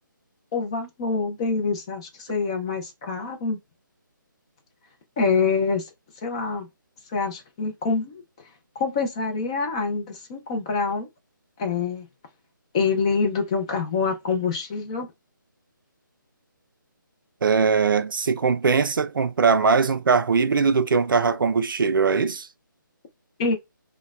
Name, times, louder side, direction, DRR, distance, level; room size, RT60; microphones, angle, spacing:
voice 1, 0.5-3.6 5.2-5.9 6.2-6.7 7.1-8.2 8.8-11.1 11.6-12.1 12.7-15.1 23.4-23.5, left 4 dB, 15° left, 0.4 m, -25 dB
voice 2, 17.4-22.5, right 5 dB, 75° right, 0.4 m, -21 dB
3.0 x 2.1 x 2.3 m
figure-of-eight pair, 160°, 11 cm